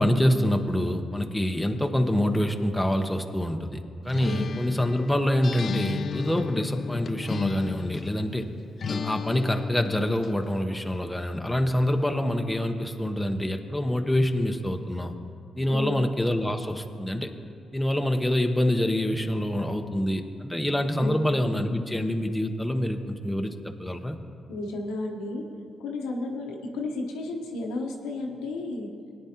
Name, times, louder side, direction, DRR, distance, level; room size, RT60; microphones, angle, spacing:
voice 1, 0.0-8.4 8.9-15.1 15.6-17.3 17.7-24.2, left 1 dB, 10° left, 4 dB, 0.9 m, -26 dB
Acoustic guitar, 4.1-8.2 8.8-10.4, left 5 dB, 55° left, 0.3 m, -34 dB
voice 2, 4.2-4.6 15.7-16.1 21.0-21.3 24.5-25.4 25.8-28.9, left 2 dB, 90° left, 1 dB, 1.0 m, -32 dB
18.0 x 9.7 x 2.9 m, 2.4 s
supercardioid pair, 55°, 0 cm